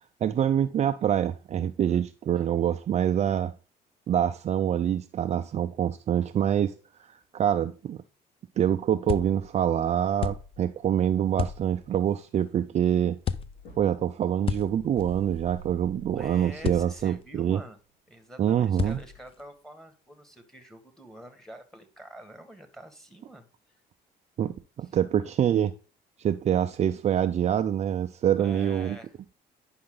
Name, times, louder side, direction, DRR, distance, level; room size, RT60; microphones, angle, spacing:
voice 1, 0.2-3.5 4.1-6.8 7.3-8.0 8.6-13.2 13.8-17.6 18.4-19.0 24.4-25.7 26.2-29.0, right 9 dB, 40° right, 0.4 m, -25 dB
sound 1, 9.1-9.6 10.2-10.7 11.4-11.9 13.2-13.8 14.5-15.3 16.6-17.2 18.8-19.4, left 8 dB, 35° left, 0.5 m, -33 dB
sound 2, 13.2-13.3 13.5-14.2 15.9-16.0 17.8-18.0 18.9-19.0, left 1 dB, 80° left, 3.1 m, -52 dB
sound 3, 15.0-17.7, right 12 dB, 90° right, 0.9 m, -44 dB
voice 2, 16.1-17.8 18.1-23.8 24.8-24.9 28.4-29.1, equal, 5° left, 1.8 m, -47 dB
9.6 x 5.7 x 3.8 m
cardioid pair, 110°, 17 cm